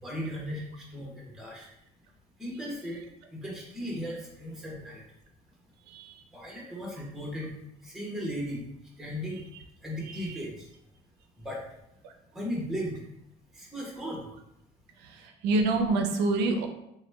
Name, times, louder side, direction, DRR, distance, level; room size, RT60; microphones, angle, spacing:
voice 1, 0.0-1.7 2.4-3.0 3.3-5.0 6.3-8.6 9.0-9.4 9.8-10.7 11.4-11.6 12.3-13.0 13.5-14.3, equal, 5° right, -3 dB, 1.0 m, -36 dB
voice 2, 10.1-10.4 15.0-16.7, right 3 dB, 85° right, 4 dB, 0.4 m, -27 dB
2.9 x 2.2 x 3.3 m, 0.80 s
cardioid pair, 110°, 17 cm